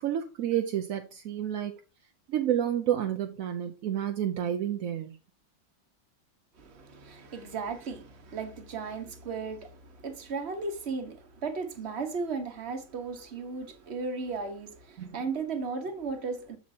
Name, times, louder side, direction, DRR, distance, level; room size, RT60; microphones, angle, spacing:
voice 1, 0.0-1.8 2.3-5.2 15.0-15.2, right 10 dB, 65° right, 0.8 m, -30 dB
voice 2, 6.6-16.6, right 4 dB, 40° right, 1.2 m, -36 dB
7.2 x 7.2 x 2.7 m
omnidirectional pair, 2.0 m